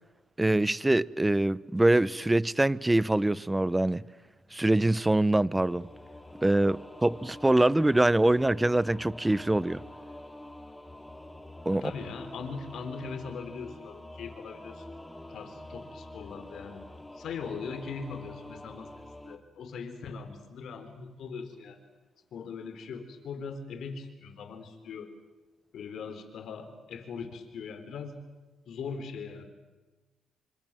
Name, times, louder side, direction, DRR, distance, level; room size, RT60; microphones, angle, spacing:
voice 1, 0.4-4.0 4.5-5.9 6.4-9.8 11.7-11.9, right 1 dB, 10° right, 0.8 m, -24 dB
Singing / Musical instrument, 5.5-19.4, left 1 dB, 10° left, 2.7 m, -46 dB
voice 2, 11.7-14.9 15.3-16.8 17.1-21.8 22.3-25.1 25.7-28.2 28.7-29.5, left 5 dB, 65° left, 4.5 m, -40 dB
27.0 x 26.0 x 7.8 m
cardioid pair, 90°, 0 cm